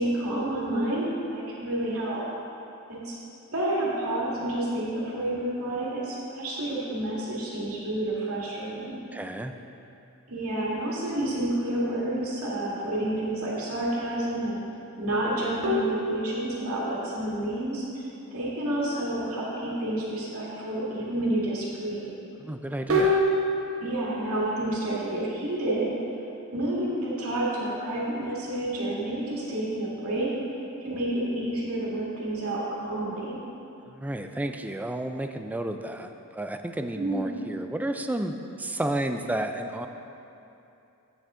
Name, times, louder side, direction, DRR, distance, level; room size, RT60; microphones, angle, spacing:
voice 1, 0.0-2.3 2.9-3.1 3.5-9.0 10.3-14.6 15.0-22.1 23.7-26.0 26.5-30.3 30.8-33.4 37.0-37.4, right 1 dB, 80° right, -6 dB, 2.1 m, -29 dB
voice 2, 9.1-9.5 22.4-23.2 33.9-39.9, right 1 dB, 5° right, 6 dB, 0.3 m, -32 dB
sound 1, 15.6-16.8 22.9-24.0, equal, 65° right, 1.0 m, -25 dB
8.6 x 7.5 x 3.7 m, 2.8 s
head